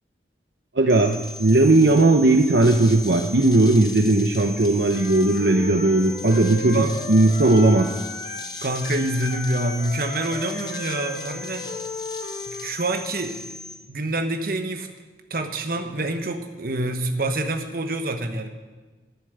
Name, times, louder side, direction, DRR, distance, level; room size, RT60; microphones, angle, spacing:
voice 1, 0.7-8.0, right 2 dB, 65° right, 3 dB, 0.8 m, -18 dB
sound 1, 0.9-13.8, left 3 dB, 25° left, 0.9 m, -38 dB
Wind instrument woodwind instrument, 4.9-8.5 8.8-12.7, left 3 dB, 85° left, 2.3 m, -35 dB
voice 2, 8.6-11.7 12.5-13.4 13.9-14.9 15.3-18.5, right 2 dB, 50° right, 5 dB, 1.2 m, -26 dB
11.5 x 9.7 x 6.8 m, 1.3 s
head